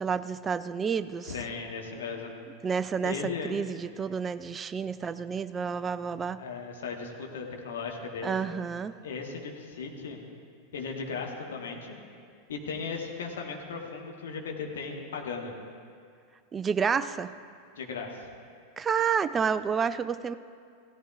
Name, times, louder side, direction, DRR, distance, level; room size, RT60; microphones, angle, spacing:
voice 1, 0.0-1.3 2.6-6.4 8.2-9.0 16.5-17.3 18.8-20.4, right 6 dB, 20° right, 13 dB, 0.4 m, -29 dB
voice 2, 1.2-2.3 3.0-3.5 6.4-8.4 9.0-10.2 10.7-12.0 12.5-15.5 17.8-18.3, left 5 dB, 60° left, 1 dB, 1.5 m, -37 dB
16.5 x 14.0 x 2.5 m, 2.2 s
figure-of-eight pair, 90°, 0 cm